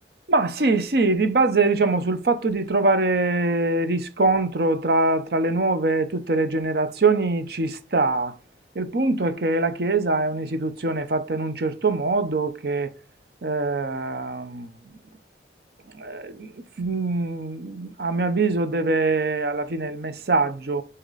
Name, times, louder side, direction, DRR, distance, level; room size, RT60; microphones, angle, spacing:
voice 1, 0.3-8.3 8.7-12.9 13.4-14.7 16.0-16.5 16.8-20.8, right 3 dB, 60° right, 0.8 m, -23 dB
8.0 x 2.9 x 4.0 m
head